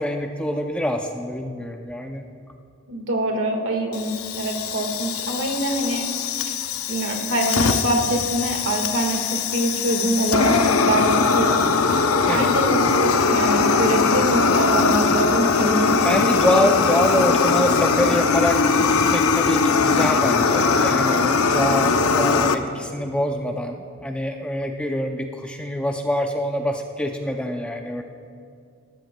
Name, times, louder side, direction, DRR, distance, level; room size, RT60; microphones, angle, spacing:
voice 1, 0.0-2.3 12.3-12.5 16.0-28.0, left 1 dB, 5° left, 3 dB, 0.4 m, -25 dB
voice 2, 2.9-4.1 4.3-6.0 6.9-11.6 12.3-16.0, right 1 dB, 65° right, 2 dB, 1.7 m, -24 dB
Fire, 3.9-22.5, left 4 dB, 85° left, 0.6 m, -20 dB
19.0 x 13.0 x 2.2 m, 2.3 s
head